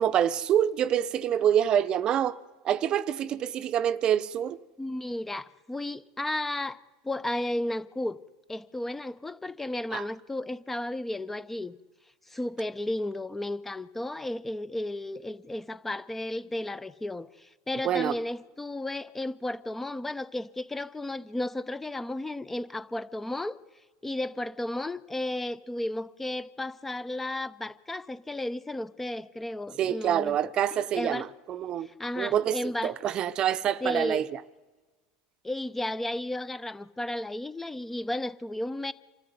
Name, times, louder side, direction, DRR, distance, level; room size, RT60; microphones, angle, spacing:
voice 1, 0.0-2.4 2.6-4.6 9.9-10.0 17.8-18.2 29.8-31.9 32.2-34.4, right 10 dB, 45° right, 0.8 m, -26 dB
voice 2, 4.8-8.2 8.5-11.7 12.3-23.6 24.0-30.3 30.9-31.3 31.8-33.0 33.8-34.2 35.4-38.9, left 1 dB, 10° left, 0.9 m, -33 dB
26.0 x 13.5 x 9.6 m
hypercardioid pair, 100°, 2 cm